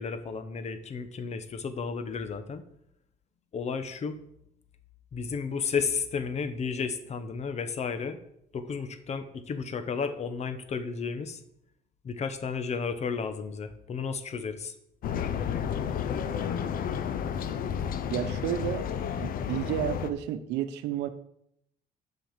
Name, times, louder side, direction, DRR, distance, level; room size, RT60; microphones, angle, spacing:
voice 1, 0.0-2.6 3.5-4.2 5.1-8.2 8.5-11.4 12.0-14.7, left 5 dB, 40° left, 11 dB, 1.0 m, -33 dB
sound 1, 15.0-20.1, left 8 dB, 60° left, 0.8 m, -31 dB
voice 2, 18.1-18.8 19.2-21.1, right 11 dB, 90° right, 10 dB, 0.9 m, -31 dB
7.5 x 5.6 x 7.3 m, 0.75 s
cardioid pair, 110°, 17 cm